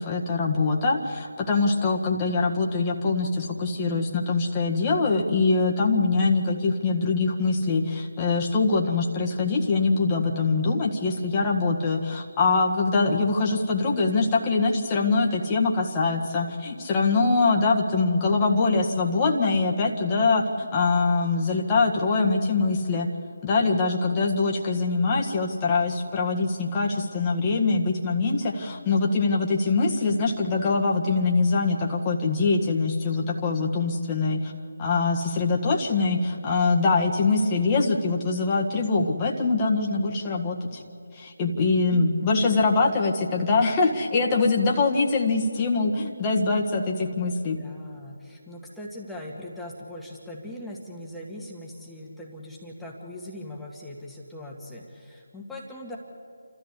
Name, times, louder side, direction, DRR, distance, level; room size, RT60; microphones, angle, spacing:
voice 1, 0.0-23.1 23.4-34.5 34.8-40.8 41.1-47.6, left 3 dB, 20° left, -1 dB, 1.8 m, -23 dB
voice 2, 42.5-43.0 47.6-56.0, left 1 dB, 5° left, -3 dB, 2.0 m, -40 dB
29.0 x 13.5 x 8.4 m, 2.4 s
figure-of-eight pair, 160°, 0 cm